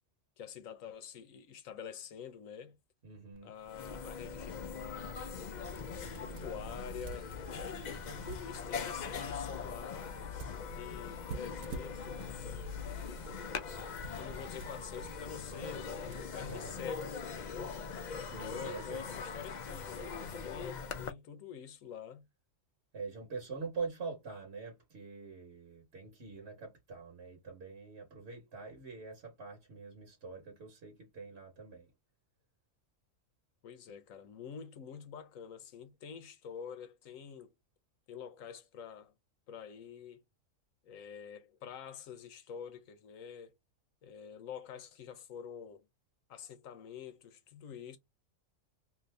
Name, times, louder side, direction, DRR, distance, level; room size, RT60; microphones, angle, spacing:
voice 1, 0.4-2.8 3.4-5.2 5.9-10.2 10.6-12.7 13.9-17.7 18.4-22.3 33.6-37.5 38.1-39.1 39.5-40.2 40.8-43.5 44.0-45.8 46.3-48.0, left 8 dB, 85° left, 1.1 m, -47 dB
voice 2, 3.0-3.5 16.3-16.8 18.2-19.1 22.9-31.9, right 4 dB, 55° right, 1.1 m, -44 dB
sound 1, 3.4-3.5 3.6-21.1, left 5 dB, 65° left, 0.4 m, -41 dB
sound 2, 6.1-6.6 6.9-9.1 10.4-12.5 13.1-17.3, right 5 dB, 90° right, 1.1 m, -49 dB
2.7 x 2.7 x 3.2 m
omnidirectional pair, 1.4 m